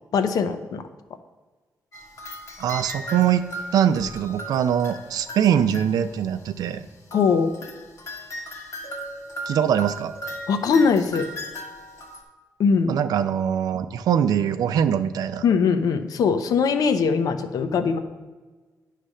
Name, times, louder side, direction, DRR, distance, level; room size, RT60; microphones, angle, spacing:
voice 1, 0.1-0.8 7.1-7.5 10.5-11.3 12.6-13.0 15.4-18.0, left 5 dB, 70° left, 9 dB, 0.7 m, -21 dB
sound 1, 1.9-6.6 7.1-12.2, right 1 dB, 55° left, 1.2 m, -37 dB
voice 2, 2.6-6.9 9.5-10.1 12.9-15.4, right 9 dB, 90° right, 11 dB, 0.4 m, -22 dB
9.8 x 3.3 x 6.4 m, 1.3 s
cardioid pair, 125°, 6 cm